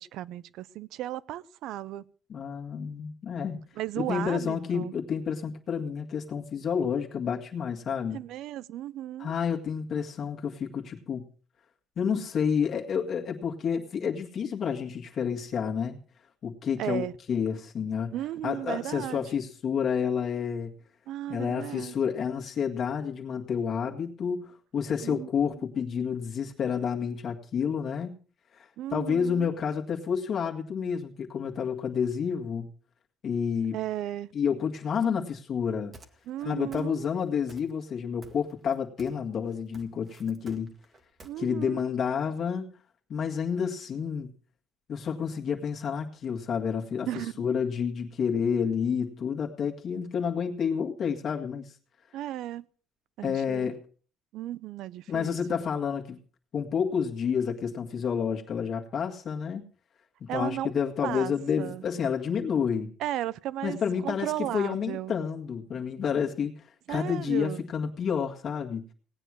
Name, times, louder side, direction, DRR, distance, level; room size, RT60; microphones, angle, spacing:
voice 1, 0.0-2.0 3.8-4.9 8.1-9.3 16.8-17.1 18.1-19.2 21.1-21.9 25.0-25.6 28.8-29.5 33.7-34.3 36.3-37.1 41.2-41.9 47.1-47.5 52.1-52.7 53.2-53.7 54.3-55.6 60.3-60.7 61.0-61.8 63.0-63.8 64.0-65.1 66.9-67.6, right 13 dB, 65° right, 21 dB, 0.6 m, -35 dB
voice 2, 2.3-3.6 4.0-8.2 9.2-11.2 12.0-16.0 16.4-18.1 18.4-20.7 21.3-28.2 28.5-32.7 33.2-33.8 34.3-35.9 36.4-40.7 41.4-42.7 43.1-44.3 44.9-47.1 47.4-51.7 53.2-53.8 55.1-56.2 56.5-59.6 60.2-62.9 63.6-68.8, left 7 dB, 40° left, 0 dB, 1.9 m, -29 dB
sound 1, 35.9-36.4 36.7-37.2 37.5-38.0 38.2-39.3 39.5-41.3, right 2 dB, 25° right, 1.7 m, -51 dB
18.0 x 9.1 x 6.3 m, 0.42 s
cardioid pair, 150°, 0 cm